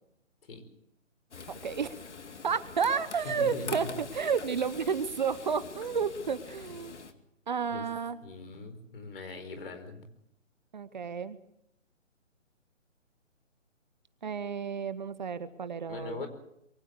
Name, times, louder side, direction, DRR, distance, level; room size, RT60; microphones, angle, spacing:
Frying (food), 1.3-7.1, left 5 dB, 65° left, 2.3 m, -45 dB
voice 1, 1.6-1.9 2.4-3.9 4.1-7.0 7.5-8.2 10.7-11.4 14.2-16.2, right 6 dB, 40° right, 14 dB, 1.0 m, -31 dB
voice 2, 3.2-4.0 7.7-7.8 8.2-10.1 15.9-16.3, left 2 dB, 50° left, 8 dB, 4.8 m, -40 dB
23.0 x 16.0 x 8.1 m, 0.75 s
figure-of-eight pair, 155°, 38 cm